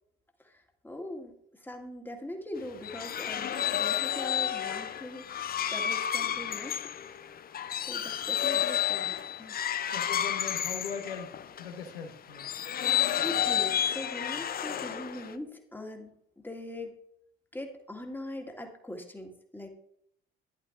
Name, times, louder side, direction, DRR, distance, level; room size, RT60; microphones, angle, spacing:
voice 1, 0.4-6.8 7.8-9.6 13.2-16.9 17.5-19.7, left 1 dB, 5° left, 2 dB, 1.9 m, -41 dB
sound 1, 2.6-11.7 12.3-15.3, left 10 dB, 30° left, 0.6 m, -31 dB
voice 2, 9.9-12.5, left 6 dB, 75° left, 5 dB, 1.2 m, -40 dB
12.0 x 11.0 x 2.6 m, 0.71 s
figure-of-eight pair, 50°, 29 cm